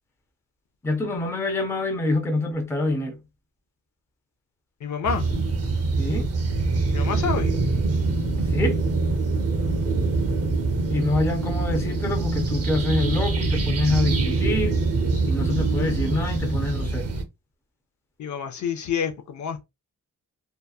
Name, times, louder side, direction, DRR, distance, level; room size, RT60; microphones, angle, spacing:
voice 1, 0.8-3.2 6.0-6.3 8.5-8.8 10.9-14.8 15.3-17.1, left 2 dB, 10° left, 0.5 m, -26 dB
voice 2, 4.8-5.3 6.9-7.6 18.2-19.6, left 7 dB, 60° left, 0.5 m, -28 dB
sound 1, 5.0-17.2, right 3 dB, 45° right, 0.7 m, -24 dB
2.8 x 2.3 x 2.3 m
wide cardioid pair, 160°, 33 cm